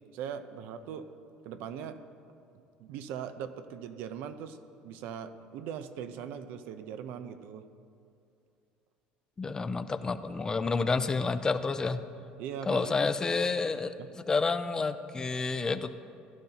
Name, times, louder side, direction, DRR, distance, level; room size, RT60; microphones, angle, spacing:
voice 1, 0.1-1.1 1.4-2.0 2.8-4.6 4.8-7.6 12.4-13.1 14.0-14.1, right 8 dB, 70° right, 10 dB, 0.6 m, -40 dB
voice 2, 9.4-12.0 12.7-15.9, left 4 dB, 20° left, 11 dB, 0.5 m, -29 dB
16.0 x 11.5 x 2.9 m, 2.5 s
cardioid pair, 130°, 4 cm